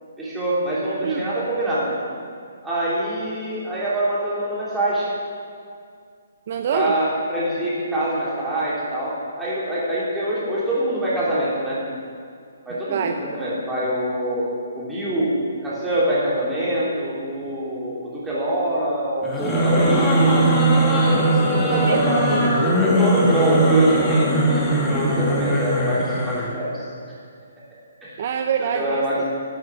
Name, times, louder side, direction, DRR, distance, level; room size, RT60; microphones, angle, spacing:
voice 1, 0.2-1.9 2.6-5.1 6.7-11.8 12.6-14.5 14.7-15.3 15.6-20.4 21.1-22.2 22.8-24.3 24.8-26.8 28.0-28.2 28.7-29.3, right 1 dB, 5° right, -9 dB, 3.4 m, -24 dB
voice 2, 6.5-7.0 12.9-13.2 21.7-22.8 28.2-29.2, right 7 dB, 45° right, 6 dB, 0.6 m, -25 dB
sound 1, 19.2-26.5, right 1 dB, 10° left, 1.7 m, -19 dB
11.5 x 8.4 x 7.3 m, 2.2 s
hypercardioid pair, 160°, 0 cm